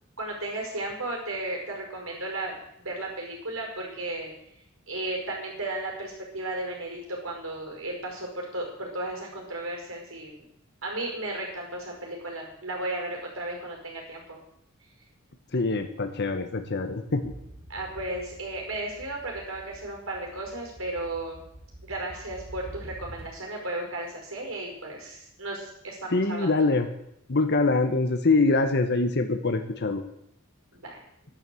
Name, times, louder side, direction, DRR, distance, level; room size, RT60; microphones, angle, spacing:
voice 1, 0.2-4.3 4.9-10.4 10.8-14.4 17.7-21.5 21.8-26.5 30.7-31.0, right 2 dB, 85° right, 0 dB, 5.2 m, -34 dB
voice 2, 15.5-17.3 26.1-26.9 27.3-30.0, left 3 dB, 55° left, 6 dB, 1.2 m, -24 dB
sound 1, 17.2-23.6, right 1 dB, 45° right, 3.0 m, -46 dB
11.5 x 11.0 x 7.7 m, 0.77 s
head